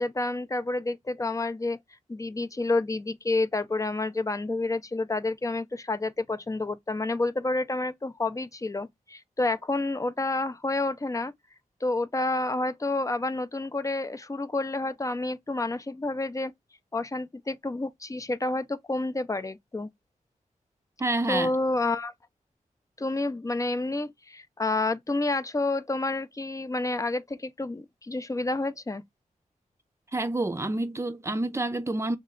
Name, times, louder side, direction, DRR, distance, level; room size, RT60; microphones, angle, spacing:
voice 1, 0.0-1.8 2.1-11.3 11.8-16.5 16.9-19.9 21.3-22.1 23.0-29.0, left 2 dB, 25° left, 0.6 m, -29 dB
voice 2, 21.0-21.5 30.1-32.2, right 2 dB, 20° right, 0.6 m, -28 dB
3.3 x 3.0 x 3.8 m
wide cardioid pair, 75°, 14 cm